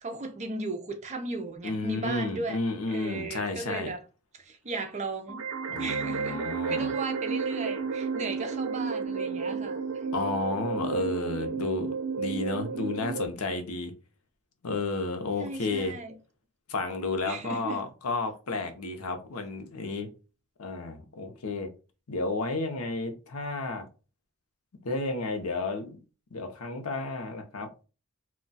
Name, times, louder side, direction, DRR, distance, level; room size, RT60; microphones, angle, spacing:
voice 1, 0.0-2.6 2.9-4.0 4.5-5.4 5.8-6.4 6.7-9.8 15.4-16.1 17.2-17.8, right 3 dB, 30° right, 0.5 m, -36 dB
voice 2, 1.6-3.9 5.7-6.9 10.1-13.9 14.6-15.9 16.7-20.1 20.6-21.7 22.1-23.9 24.8-26.0 26.3-27.7, left 3 dB, 85° left, 0.7 m, -32 dB
sound 1, 5.3-13.3, right 5 dB, 80° right, 0.5 m, -32 dB
2.2 x 2.2 x 3.9 m
head